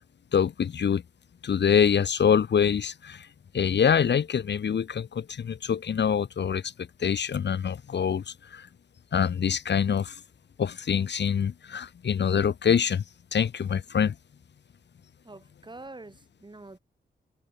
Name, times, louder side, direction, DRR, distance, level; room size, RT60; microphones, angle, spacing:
voice 1, 0.3-1.0 1.4-3.3 3.5-6.7 7.0-8.7 9.1-10.2 10.6-13.0 13.3-14.1, left 7 dB, 75° left, 1.2 m, -25 dB
voice 2, 15.2-16.8, right 2 dB, 25° right, 3.7 m, -45 dB
wide cardioid pair, 90°, 18 cm